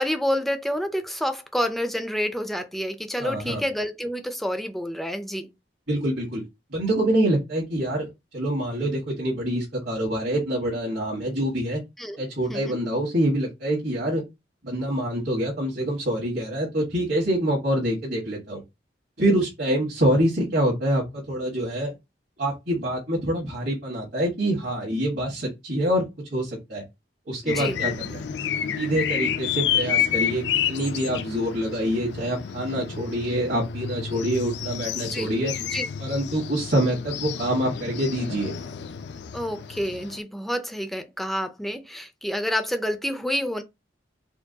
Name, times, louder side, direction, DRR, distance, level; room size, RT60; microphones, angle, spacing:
voice 1, 0.0-5.5 12.0-12.2 12.5-12.8 27.4-27.9 35.1-35.4 35.7-35.9 39.3-43.6, equal, ahead, 0.4 m, -28 dB
voice 2, 3.2-3.6 5.9-6.4 6.7-8.1 8.3-11.8 12.2-14.2 14.6-18.6 19.2-21.9 22.4-26.0 26.3-26.8 27.3-28.3 28.8-30.4 30.7-35.5 36.0-38.5, right 1 dB, 60° right, 1.6 m, -25 dB
sound 1, 27.5-40.2, left 8 dB, 65° left, 0.4 m, -30 dB
4.4 x 2.2 x 2.7 m
head